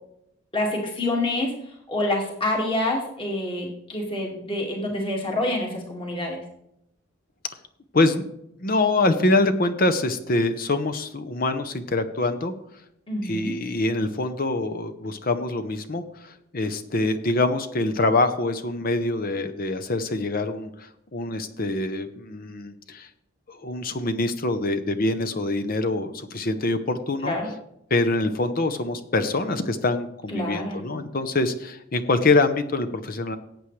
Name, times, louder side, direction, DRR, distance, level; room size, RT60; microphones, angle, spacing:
voice 1, 0.5-1.5 1.9-6.4 13.1-13.5 27.2-27.5 30.3-30.9, left 1 dB, 25° left, 0 dB, 2.0 m, -27 dB
voice 2, 7.9-8.3 8.6-12.5 13.2-23.1 23.5-27.3 27.9-33.4, left 2 dB, 40° left, 9 dB, 0.7 m, -25 dB
18.0 x 8.4 x 3.2 m, 0.79 s
head